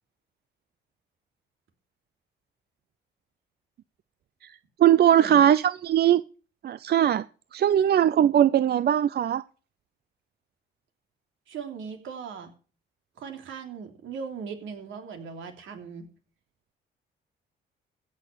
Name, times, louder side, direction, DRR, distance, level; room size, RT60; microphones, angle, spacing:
voice 1, 4.8-6.2 6.6-7.2 7.5-9.4, right 10 dB, 55° right, 0.5 m, -20 dB
voice 2, 11.5-12.5 13.2-16.1, right 6 dB, 75° right, 3.1 m, -39 dB
16.0 x 6.3 x 7.0 m
cardioid pair, 90°, 20 cm